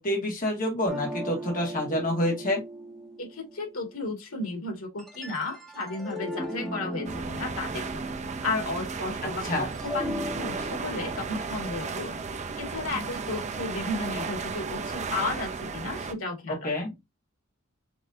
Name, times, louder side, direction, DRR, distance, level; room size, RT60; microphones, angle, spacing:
voice 1, 0.0-2.6 9.4-9.7 16.5-16.9, left 1 dB, 40° left, 2.1 m, -28 dB
sound 1, 0.9-4.0 5.0-9.3 9.6-13.8, equal, ahead, 1.7 m, -38 dB
voice 2, 3.2-8.1 8.4-12.2 12.6-16.9, left 3 dB, 90° left, 2.1 m, -34 dB
sound 2, 7.0-16.1, right 4 dB, 35° right, 0.5 m, -34 dB
6.0 x 3.2 x 2.6 m
head